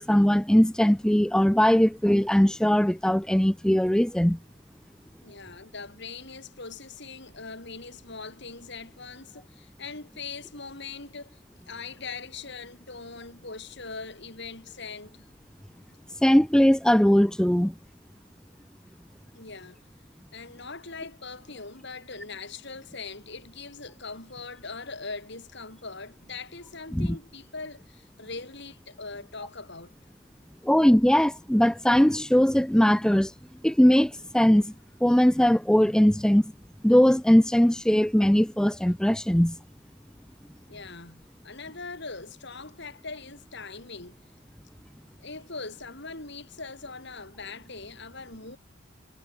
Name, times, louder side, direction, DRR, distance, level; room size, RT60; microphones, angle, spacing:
voice 1, 0.0-4.4 16.2-17.7 26.9-27.1 30.6-33.3 33.6-34.7 35.0-36.5 36.8-39.6, equal, 5° left, 0.4 m, -20 dB
voice 2, 5.2-11.4 11.7-15.3 19.3-19.8 20.3-29.9 40.7-44.2 45.2-48.6, left 4 dB, 60° left, 6.8 m, -41 dB
head